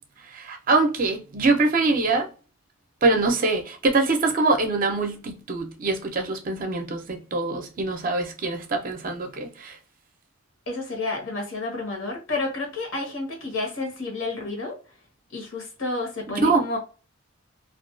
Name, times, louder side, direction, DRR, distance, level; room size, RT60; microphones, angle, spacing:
voice 1, 0.3-2.3 3.0-9.8 16.3-16.7, right 3 dB, 40° right, 0.5 m, -24 dB
voice 2, 10.7-14.8 15.3-16.8, left 2 dB, 65° left, 1.0 m, -30 dB
2.4 x 2.2 x 2.4 m
head